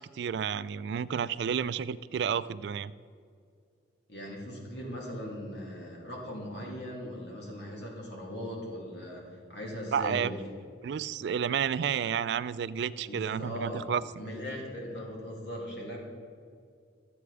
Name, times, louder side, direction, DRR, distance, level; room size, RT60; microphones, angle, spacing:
voice 1, 0.0-2.9 9.9-10.3 10.8-14.0, right 7 dB, 65° right, 16 dB, 0.3 m, -31 dB
voice 2, 4.1-10.4 13.1-16.0, equal, 65° left, -2 dB, 2.6 m, -39 dB
13.0 x 7.9 x 4.8 m, 2.2 s
head